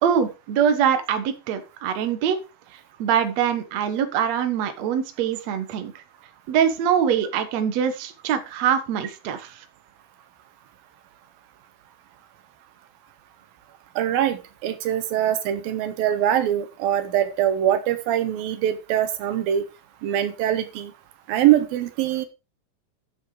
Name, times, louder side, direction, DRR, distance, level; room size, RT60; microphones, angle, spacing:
voice 1, 0.0-2.4 3.0-5.9 6.5-9.5, right 8 dB, 60° right, 8 dB, 2.3 m, -23 dB
voice 2, 14.0-19.6 20.0-20.9 21.3-22.3, right 11 dB, 85° right, 10 dB, 3.0 m, -23 dB
10.5 x 7.3 x 4.9 m, 0.28 s
omnidirectional pair, 4.0 m